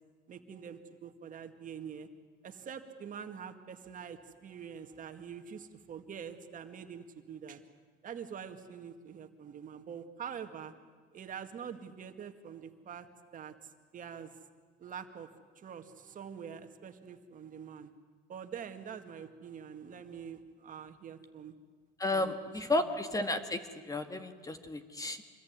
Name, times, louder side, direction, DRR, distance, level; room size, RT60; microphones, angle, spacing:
voice 1, 0.3-2.1 2.4-7.6 8.0-10.7 11.1-13.1 13.3-14.4 14.8-15.3 15.6-17.9 18.3-21.5 22.1-22.3 22.8-22.9, right 7 dB, 45° right, 6 dB, 2.1 m, -45 dB
voice 2, 22.0-25.2, left 2 dB, 20° left, 8 dB, 1.8 m, -33 dB
26.0 x 21.0 x 9.6 m, 1.5 s
cardioid pair, 115°, 19 cm